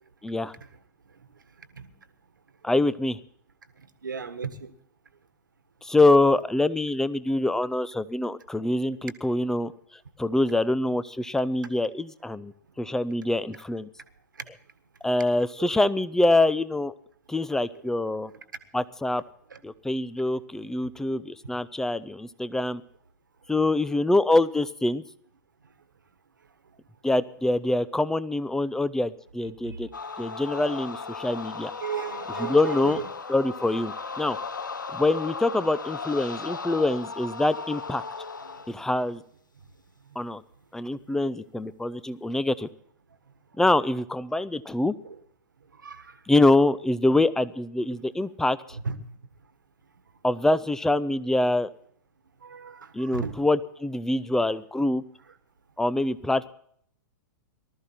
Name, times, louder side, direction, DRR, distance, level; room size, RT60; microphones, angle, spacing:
voice 1, 0.2-0.5 2.6-3.2 5.8-9.7 10.2-13.9 15.0-16.9 17.3-18.3 18.7-19.2 19.6-22.8 23.5-25.0 27.0-29.9 30.2-31.7 32.4-33.0 33.3-34.4 34.9-38.0 38.7-39.2 40.2-40.4 40.7-42.7 43.6-44.9 46.3-48.8 50.2-51.7 52.9-55.0 55.8-56.5, left 2 dB, 5° left, 0.6 m, -25 dB
voice 2, 4.0-4.5 15.6-15.7 31.8-33.1 45.0-45.1 45.8-46.0 48.7-49.0 52.4-53.4, right 6 dB, 85° right, 1.6 m, -34 dB
sound 1, 29.9-38.8, left 4 dB, 90° left, 0.9 m, -36 dB
19.5 x 13.0 x 4.3 m
hypercardioid pair, 110°, 10 cm